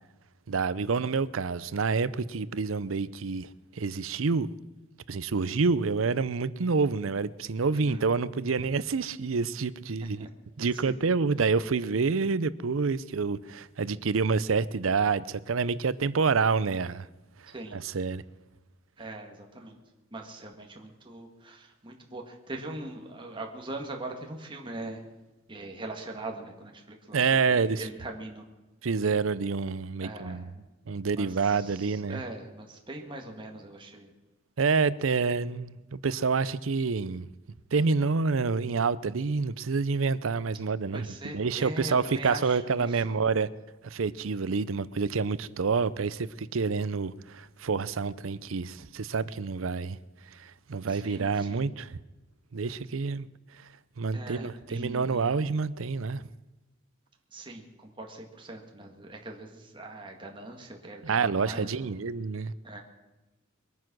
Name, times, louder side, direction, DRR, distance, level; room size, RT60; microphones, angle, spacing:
voice 1, 0.5-3.5 3.8-4.5 5.1-10.3 10.6-17.0 17.7-18.2 27.1-27.9 28.8-30.5 30.9-32.2 34.6-37.3 37.7-41.1 41.3-43.5 43.8-50.0 50.4-52.0 52.5-53.3 54.0-56.2 61.0-62.5, right 4 dB, 80° right, 0.6 m, -28 dB
voice 2, 19.0-19.8 20.1-25.0 25.5-28.4 30.0-30.7 31.2-34.1 40.9-43.2 50.9-51.7 54.1-55.4 57.3-61.9 62.6-62.8, right 2 dB, 25° right, 1.8 m, -41 dB
22.5 x 9.5 x 6.1 m
head